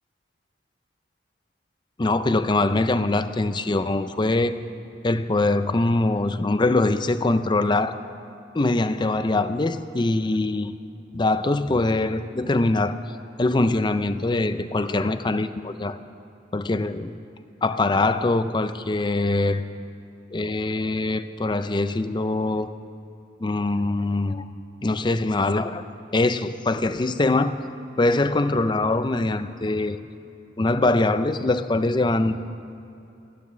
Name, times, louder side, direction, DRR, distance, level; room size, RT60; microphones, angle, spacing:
voice 1, 2.0-4.5 5.0-8.0 8.5-10.7 11.1-12.9 13.4-16.0 16.5-17.1 17.6-19.6 20.3-22.7 23.4-24.5 24.8-25.8 26.1-27.6 28.0-30.0 30.6-32.4, left 2 dB, 25° left, 12 dB, 0.5 m, -23 dB
15.5 x 11.5 x 7.6 m, 2.8 s
head